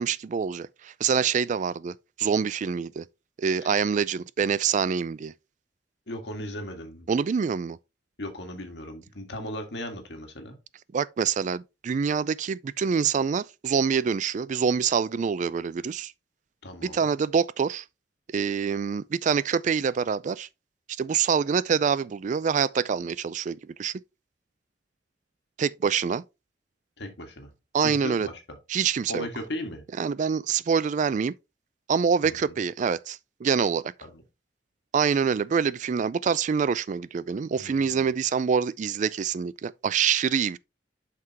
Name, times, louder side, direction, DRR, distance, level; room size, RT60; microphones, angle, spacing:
voice 1, 0.0-3.1 3.4-5.3 7.1-7.8 10.9-16.1 16.8-17.8 18.3-20.5 21.0-23.9 25.6-26.2 27.7-28.3 28.7-29.3 30.0-31.3 31.9-33.9 34.9-40.6, right 6 dB, 45° right, 0.3 m, -26 dB
voice 2, 6.1-7.1 8.2-10.6 16.6-17.1 27.0-27.5 27.8-28.6 29.1-29.8 32.2-32.6 34.0-34.2 37.6-38.2, left 1 dB, 75° left, 1.8 m, -37 dB
7.5 x 6.0 x 2.9 m
head